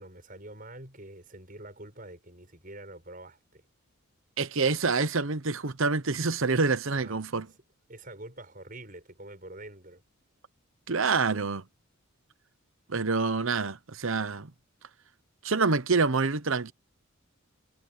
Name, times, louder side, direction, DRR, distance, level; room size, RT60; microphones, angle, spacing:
voice 1, 0.0-3.6 6.9-7.2 7.9-10.0, right 1 dB, 40° right, 7.3 m, -46 dB
voice 2, 4.4-7.5 10.9-11.6 12.9-14.5 15.4-16.7, right 4 dB, 65° right, 1.0 m, -27 dB
head